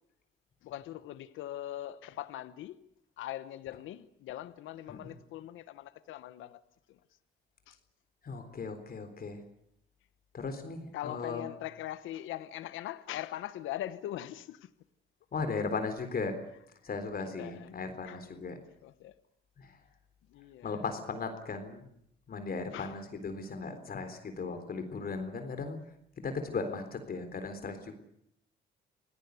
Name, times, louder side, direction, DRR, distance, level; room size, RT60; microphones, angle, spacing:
voice 1, 0.6-2.8 3.2-6.6 6.9-7.0 7.7-7.8 10.9-14.7 17.2-18.2 18.8-19.1 20.3-20.8 22.7-23.1, left 13 dB, 90° left, 1.1 m, -41 dB
voice 2, 8.2-9.4 10.3-11.4 15.3-16.5 16.8-18.5 19.6-19.8 20.6-21.9 22.3-25.8 26.2-27.9, left 4 dB, 50° left, 3.8 m, -37 dB
27.0 x 17.5 x 8.3 m
cardioid pair, 90°, 20 cm